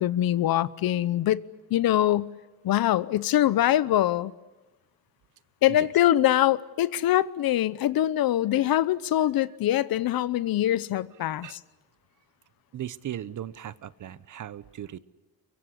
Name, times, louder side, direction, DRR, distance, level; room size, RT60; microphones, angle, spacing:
voice 1, 0.0-1.4 1.7-2.3 2.6-4.3 5.6-11.5, left 13 dB, 65° left, 0.9 m, -23 dB
voice 2, 12.7-15.0, right 11 dB, 50° right, 1.0 m, -38 dB
23.5 x 23.5 x 9.9 m
cardioid pair, 115°, 38 cm